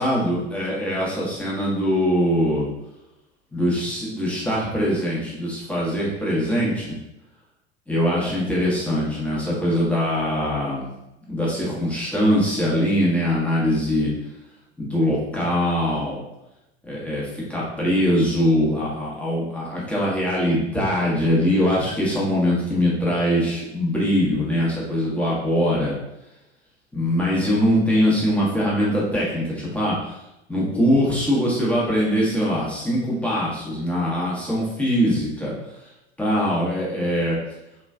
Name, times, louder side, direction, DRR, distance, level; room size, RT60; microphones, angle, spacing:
voice 1, 0.0-2.7 3.5-7.0 7.9-10.9 11.3-14.1 14.8-16.2 16.8-25.9 26.9-30.0 30.5-35.5 36.2-37.4, equal, 5° left, -6 dB, 1.0 m, -22 dB
3.1 x 2.3 x 2.2 m, 0.90 s
figure-of-eight pair, 80°, 33 cm